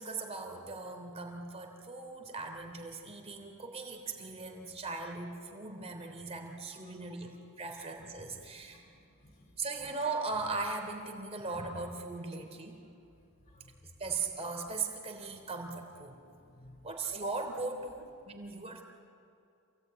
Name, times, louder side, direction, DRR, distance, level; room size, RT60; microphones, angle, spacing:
voice 1, 0.0-8.8 9.6-12.8 14.0-16.2 16.8-18.8, right 3 dB, 30° right, 3 dB, 3.3 m, -39 dB
voice 2, 8.4-9.6 12.7-12.8 13.4-13.7 16.4-16.8, left 1 dB, 35° left, 5 dB, 3.2 m, -60 dB
27.5 x 18.0 x 9.4 m, 2.5 s
head